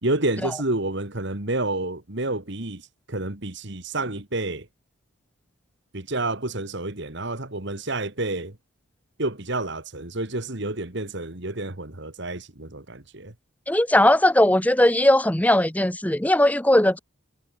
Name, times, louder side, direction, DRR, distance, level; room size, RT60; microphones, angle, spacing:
voice 1, 0.0-2.8 3.1-4.7 5.9-8.6 9.2-13.3, right 2 dB, 55° right, 2.2 m, -29 dB
voice 2, 13.7-17.0, left 1 dB, 5° left, 0.8 m, -18 dB
head